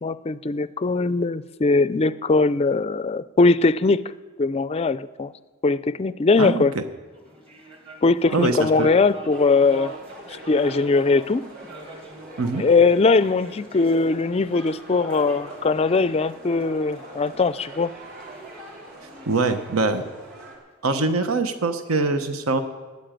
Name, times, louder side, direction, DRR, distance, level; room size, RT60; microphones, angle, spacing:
voice 1, 0.0-4.0 4.4-5.3 5.6-6.7 8.0-9.9 10.5-11.5 12.6-17.9, left 3 dB, 30° left, 16 dB, 0.4 m, -20 dB
voice 2, 6.4-6.8 8.3-8.9 12.4-12.6 19.3-20.0 20.8-22.6, right 3 dB, 80° right, 9 dB, 1.0 m, -23 dB
sound 1, 7.1-20.8, right 2 dB, 25° right, 1.9 m, -44 dB
sound 2, 9.3-20.5, right 1 dB, 45° right, 4.0 m, -44 dB
13.0 x 9.4 x 9.0 m, 1.3 s
head